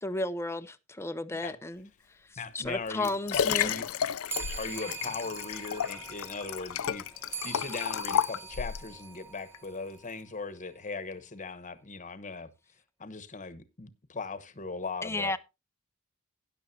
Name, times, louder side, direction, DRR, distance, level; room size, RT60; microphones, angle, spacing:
voice 1, 0.0-1.9 2.3-3.7 15.0-15.4, left 2 dB, 10° left, 0.6 m, -33 dB
voice 2, 2.4-3.9 4.6-12.5 13.0-15.4, left 4 dB, 35° left, 1.0 m, -39 dB
Liquid, 2.6-8.9 9.5-9.6, left 8 dB, 70° left, 0.5 m, -32 dB
sound 1, 4.3-10.1, right 5 dB, 10° right, 1.0 m, -43 dB
12.5 x 10.5 x 2.7 m
head